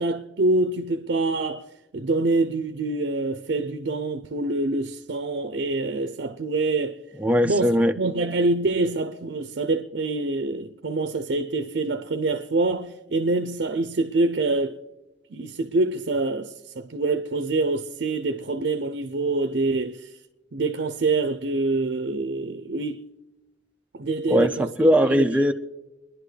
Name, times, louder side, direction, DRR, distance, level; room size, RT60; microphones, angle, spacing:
voice 1, 0.0-1.6 1.9-7.0 7.4-7.7 8.0-14.8 15.3-20.1 20.5-23.0 23.9-24.7 25.1-25.3, right 2 dB, 65° right, 0.5 m, -25 dB
voice 2, 7.2-8.0 24.3-25.5, equal, 10° right, 0.4 m, -20 dB
27.0 x 11.0 x 3.2 m
head